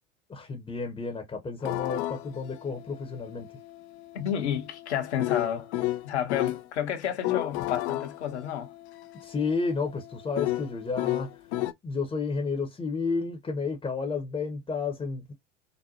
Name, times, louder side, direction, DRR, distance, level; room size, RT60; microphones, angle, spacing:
voice 1, 0.3-3.5 9.2-11.3 11.8-15.3, left 4 dB, 15° left, 0.8 m, -31 dB
sound 1, 1.6-6.6 7.0-11.7, left 16 dB, 40° left, 0.4 m, -33 dB
voice 2, 4.1-5.7 6.0-8.7, left 9 dB, 70° left, 0.9 m, -30 dB
4.0 x 2.1 x 2.6 m
figure-of-eight pair, 75°, 35 cm